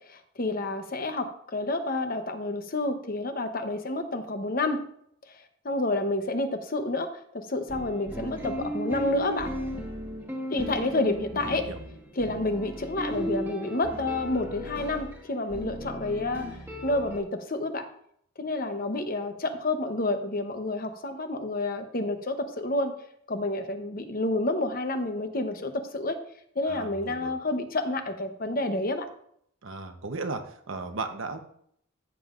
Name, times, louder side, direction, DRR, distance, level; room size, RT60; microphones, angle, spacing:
voice 1, 0.1-4.8 5.3-9.5 10.5-11.7 12.2-16.5 16.8-17.9 18.4-22.9 23.3-26.2 26.6-29.1, left 2 dB, 45° left, 7 dB, 0.9 m, -29 dB
sound 1, 7.7-17.2, equal, 10° right, 1.7 m, -36 dB
voice 2, 26.7-27.4 29.6-31.4, right 3 dB, 70° right, 6 dB, 1.0 m, -35 dB
14.0 x 7.3 x 2.5 m, 0.67 s
head